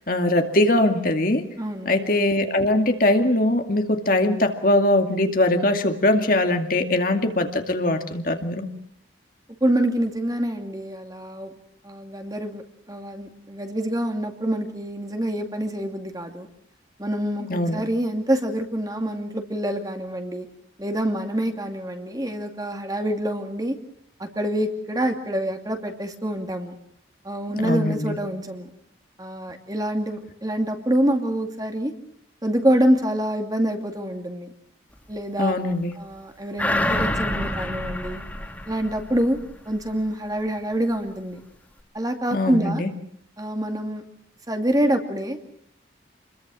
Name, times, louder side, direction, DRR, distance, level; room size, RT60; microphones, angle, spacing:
voice 1, 0.1-1.4 1.9-8.7 17.5-17.8 27.6-28.2 35.4-35.9 42.3-42.9, left 1 dB, 45° left, 5 dB, 2.3 m, -21 dB
voice 2, 1.6-1.9 9.6-11.5 11.8-12.6 12.9-16.5 17.0-20.5 20.8-23.8 24.2-26.7 27.2-28.7 29.2-31.9 32.4-34.5 35.1-35.5 36.0-38.2 38.7-39.4 39.7-41.4 41.9-42.8 43.4-44.0 44.5-45.4, right 1 dB, 20° right, 4 dB, 2.5 m, -26 dB
sound 1, 36.6-39.5 39.9-40.0, left 1 dB, 10° left, 2.9 m, -27 dB
28.0 x 22.0 x 6.3 m, 0.71 s
head